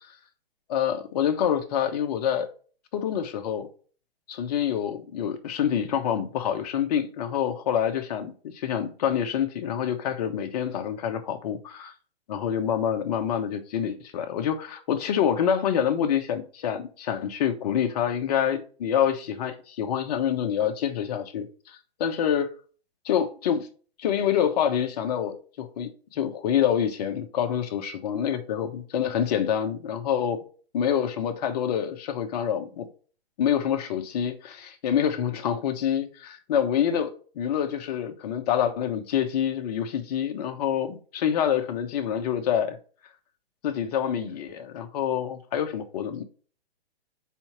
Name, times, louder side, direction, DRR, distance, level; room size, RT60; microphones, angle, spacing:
voice 1, 0.7-2.5 2.9-3.7 4.3-11.9 12.3-22.5 23.0-23.7 24.0-30.4 30.7-32.9 33.4-42.8 43.6-46.2, left 9 dB, 40° left, 1.1 m, -27 dB
4.6 x 4.4 x 5.7 m
figure-of-eight pair, 120°, 31 cm